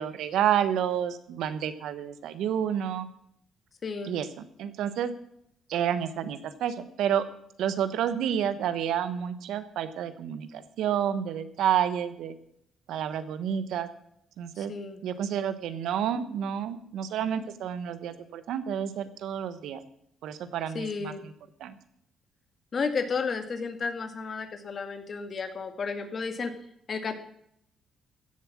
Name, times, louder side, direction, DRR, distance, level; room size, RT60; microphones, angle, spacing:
voice 1, 0.0-3.1 4.1-4.3 4.6-5.1 5.7-7.2 7.6-12.3 12.9-13.9 14.4-14.7 15.0-19.8 20.2-21.1 21.6-21.8, right 9 dB, 85° right, 12 dB, 1.2 m, -29 dB
voice 2, 3.8-4.2 14.6-15.0 20.7-21.2 22.7-26.5 26.9-27.2, left 5 dB, 45° left, 8 dB, 1.9 m, -32 dB
15.5 x 7.8 x 7.4 m, 0.71 s
cardioid pair, 90°, 0 cm